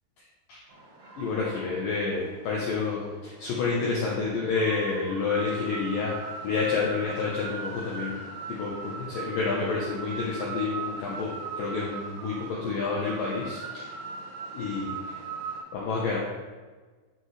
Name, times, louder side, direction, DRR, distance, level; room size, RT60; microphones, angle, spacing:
sound 1, 0.7-15.6, right 5 dB, 60° right, 2.9 m, -40 dB
voice 1, 1.2-6.2 6.4-8.2 8.5-13.9 14.5-15.2 15.7-16.2, left 4 dB, 80° left, -4 dB, 1.9 m, -29 dB
12.0 x 4.7 x 3.2 m, 1.4 s
omnidirectional pair, 5.3 m